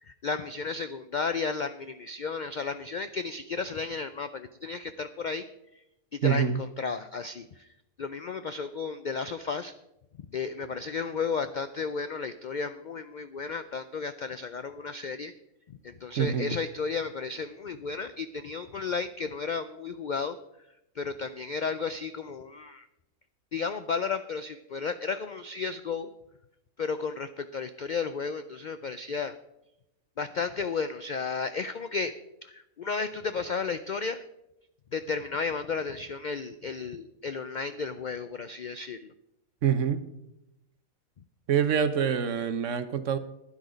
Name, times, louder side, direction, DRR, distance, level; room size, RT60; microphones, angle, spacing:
voice 1, 0.0-5.8 6.1-9.8 10.2-15.3 15.7-22.9 23.5-26.1 26.8-29.4 30.2-32.2 32.4-34.2 34.9-39.1, left 5 dB, 75° left, 12 dB, 0.4 m, -33 dB
voice 2, 6.2-6.6 16.2-16.6 39.6-40.0 41.5-43.2, right 8 dB, 65° right, 11 dB, 1.2 m, -25 dB
12.0 x 10.0 x 5.1 m, 0.86 s
omnidirectional pair, 1.5 m